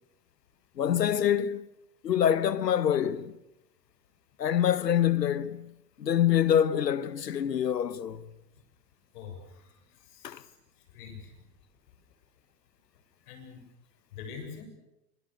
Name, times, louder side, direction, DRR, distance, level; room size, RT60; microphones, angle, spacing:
voice 1, 0.8-1.7 2.0-3.4 4.4-8.3 10.2-10.4, left 9 dB, 85° left, 1.3 m, -26 dB
voice 2, 9.1-9.7 10.1-10.4 10.9-11.4 13.3-13.6 14.1-14.6, left 6 dB, 70° left, 7.5 m, -44 dB
26.5 x 24.5 x 6.6 m
hypercardioid pair, 90°, 48 cm